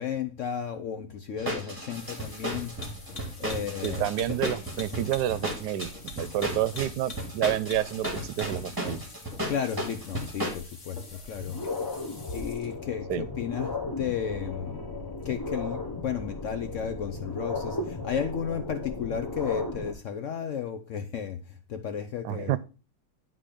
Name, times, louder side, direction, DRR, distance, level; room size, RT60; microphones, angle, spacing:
voice 1, 0.0-2.8 3.4-4.4 9.5-11.6 12.3-14.9 15.2-21.4 21.7-22.6, left 8 dB, 70° left, 0.7 m, -33 dB
sound 1, 1.4-10.5, equal, 10° right, 2.3 m, -34 dB
sound 2, 1.9-12.8, left 2 dB, 45° left, 1.8 m, -44 dB
voice 2, 3.8-5.9 6.2-9.0 13.1-13.3 22.2-22.6, right 12 dB, 80° right, 1.1 m, -29 dB
sound 3, 11.2-19.9, left 2 dB, 20° left, 0.7 m, -35 dB
10.0 x 3.8 x 5.0 m
omnidirectional pair, 1.8 m